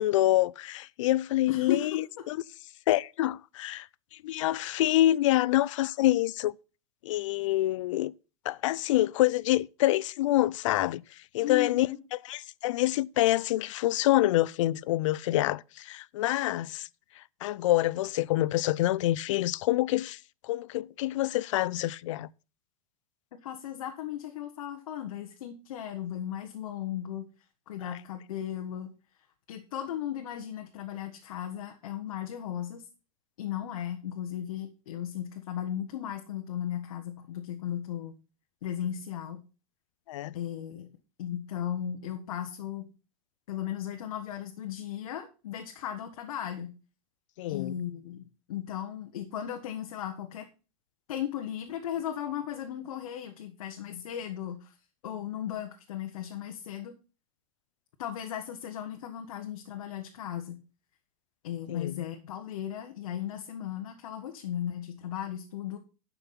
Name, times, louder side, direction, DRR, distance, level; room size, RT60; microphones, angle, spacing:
voice 1, 0.0-2.4 2.9-3.9 4.2-6.5 7.0-8.1 8.4-11.0 11.3-16.9 17.2-22.3 40.1-40.4 47.4-47.8 61.7-62.0, left 15 dB, 60° left, 0.4 m, -26 dB
voice 2, 1.5-2.0 11.4-12.0 23.4-27.3 27.7-28.9 29.5-32.8 33.4-38.1 38.6-39.4 40.3-40.9 41.2-42.9 43.5-46.7 47.5-50.5 51.1-54.7 55.0-56.9 58.0-60.6 61.4-65.8, left 10 dB, 80° left, 1.3 m, -36 dB
10.5 x 5.9 x 5.7 m
supercardioid pair, 175°, 18 cm